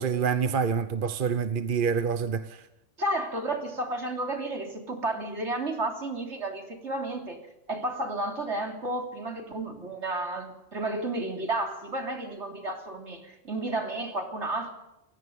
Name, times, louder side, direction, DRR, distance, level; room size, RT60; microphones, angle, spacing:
voice 1, 0.0-2.7, right 6 dB, 50° right, 1.0 m, -27 dB
voice 2, 3.0-7.4 7.7-14.7, right 2 dB, 65° right, 3.7 m, -32 dB
29.5 x 16.0 x 5.4 m
omnidirectional pair, 1.3 m